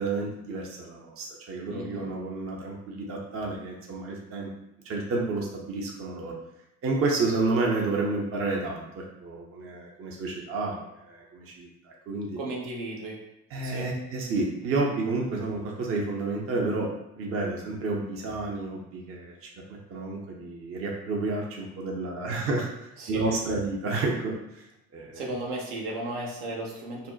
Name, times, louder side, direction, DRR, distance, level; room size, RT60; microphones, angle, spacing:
voice 1, 0.0-4.5 4.8-6.3 6.8-12.4 13.5-16.9 17.2-19.4 19.9-22.7 23.1-24.6 24.9-25.2, right 3 dB, 30° right, -1 dB, 0.6 m, -30 dB
voice 2, 1.7-2.1 12.4-13.2 13.6-13.9 23.0-23.3 25.1-27.1, right 2 dB, 65° right, -1 dB, 0.7 m, -35 dB
2.5 x 2.1 x 2.3 m, 0.88 s
hypercardioid pair, 55°, 45 cm